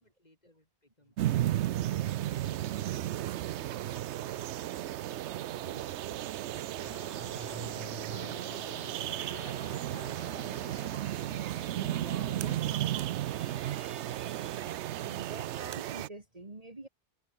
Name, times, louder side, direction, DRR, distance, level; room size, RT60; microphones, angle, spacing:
voice 1, 0.0-2.6, left 1 dB, 40° left, 6.1 m, -68 dB
sound 1, 1.2-16.1, right 13 dB, 85° right, 0.9 m, -34 dB
voice 2, 4.8-16.9, right 2 dB, 35° right, 2.5 m, -50 dB
sound 2, 6.8-12.0, left 11 dB, 65° left, 0.7 m, -51 dB
omnidirectional pair, 1.1 m